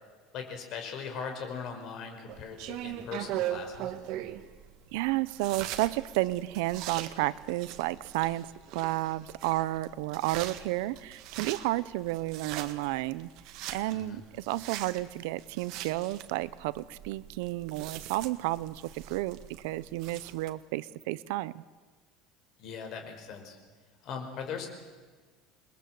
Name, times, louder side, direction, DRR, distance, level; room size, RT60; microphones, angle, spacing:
voice 1, 0.3-3.9 13.9-14.2 22.6-23.6 24.0-24.7, left 6 dB, 45° left, 5 dB, 4.9 m, -39 dB
sound 1, 2.3-20.5, right 12 dB, 55° right, 1.7 m, -41 dB
voice 2, 4.9-8.5 8.7-13.3 13.7-21.6, right 18 dB, 80° right, 17 dB, 0.8 m, -32 dB
28.0 x 21.5 x 7.8 m, 1.5 s
cardioid pair, 165°, 0 cm